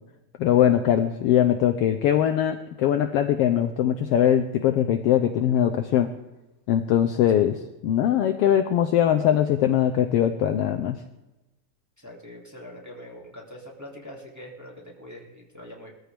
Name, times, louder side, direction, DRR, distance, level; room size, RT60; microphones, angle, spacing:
voice 1, 0.4-6.1 6.7-7.6 7.8-11.0, left 10 dB, 80° left, 7 dB, 1.4 m, -21 dB
voice 2, 12.0-15.9, left 1 dB, 5° right, -3 dB, 2.0 m, -43 dB
20.5 x 14.0 x 3.4 m, 1.0 s
omnidirectional pair, 3.3 m